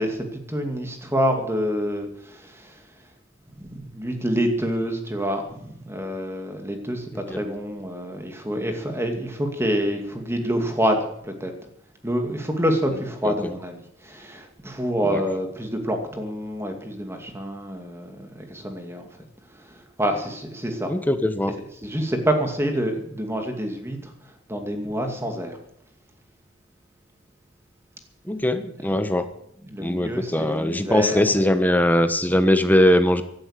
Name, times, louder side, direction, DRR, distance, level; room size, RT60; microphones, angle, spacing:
voice 1, 0.0-2.8 3.6-11.5 12.0-19.0 19.5-20.9 21.8-24.1 24.5-25.6 29.6-31.4, equal, 15° right, 4 dB, 2.5 m, -27 dB
voice 2, 20.9-21.6 28.3-29.2 29.8-33.2, left 1 dB, 10° left, 9 dB, 1.2 m, -21 dB
16.5 x 12.0 x 6.7 m, 0.73 s
head